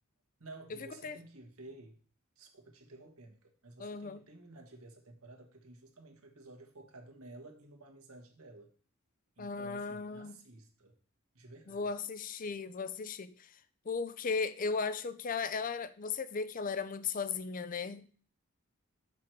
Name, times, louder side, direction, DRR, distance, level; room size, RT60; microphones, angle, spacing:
voice 1, 0.4-2.0 2.4-8.7 9.4-10.9 11.3-11.8, right 2 dB, 85° right, 1.5 m, -53 dB
voice 2, 3.8-4.2 9.4-10.4 11.7-13.6 13.9-18.1, left 5 dB, 40° left, 0.5 m, -36 dB
6.2 x 6.1 x 4.5 m
head